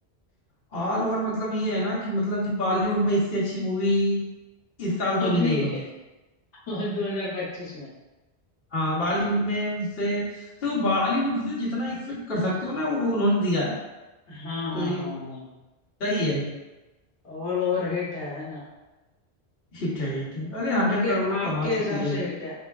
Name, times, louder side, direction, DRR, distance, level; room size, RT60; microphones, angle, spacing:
voice 1, 0.7-4.2 4.8-5.8 8.7-13.7 14.7-15.1 16.0-16.5 19.7-22.2, left 1 dB, 60° left, -7 dB, 1.2 m, -26 dB
voice 2, 5.2-5.8 6.7-7.9 14.3-15.5 17.2-18.6 20.7-22.5, left 3 dB, 80° left, -7 dB, 1.2 m, -30 dB
3.7 x 3.5 x 2.3 m, 1.1 s
omnidirectional pair, 1.1 m